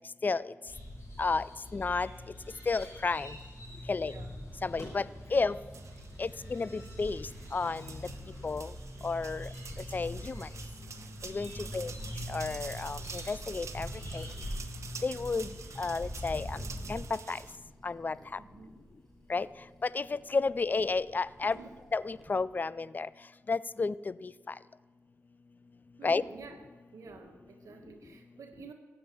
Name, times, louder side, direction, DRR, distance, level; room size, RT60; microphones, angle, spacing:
sound 1, 0.6-17.0, equal, 65° left, 5.7 m, -43 dB
voice 1, 1.7-2.1 2.7-3.3 3.9-4.1 4.6-5.1 5.3-5.6 6.2-7.8 8.4-8.7 9.0-9.5 9.9-10.5 11.2-11.9 12.3-13.9 14.1-14.2 15.0-15.5 15.8-16.6 16.9-17.4 17.8-18.2 19.3-19.5 19.9-21.6 21.9-23.1 23.5-23.9 24.2-24.3 26.0-26.2, left 4 dB, 35° left, 18 dB, 0.4 m, -31 dB
sound 2, 5.7-17.6, right 5 dB, 70° right, 1.0 m, -48 dB
voice 2, 11.2-12.1 18.4-18.8 21.4-21.7 26.0-26.6 26.9-28.7, right 5 dB, 85° right, 3 dB, 1.3 m, -51 dB
sound 3, 17.1-22.4, equal, 5° left, 5.0 m, -59 dB
15.0 x 8.7 x 7.0 m, 1.3 s
cardioid pair, 65°, 5 cm